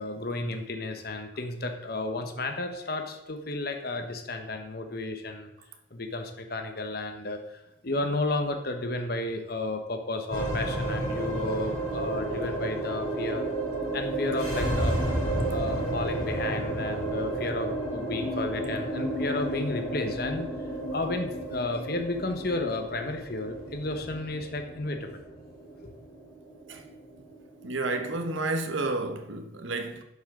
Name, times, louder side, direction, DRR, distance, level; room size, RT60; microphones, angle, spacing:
voice 1, 0.0-5.5 5.9-13.5 13.9-20.5 20.9-25.2, left 2 dB, 50° left, 1.1 m, -32 dB
sound 1, 10.3-28.8, right 1 dB, 20° left, 3.9 m, -32 dB
voice 2, 27.6-30.0, right 2 dB, 85° right, 1.2 m, -31 dB
11.5 x 7.1 x 3.8 m
head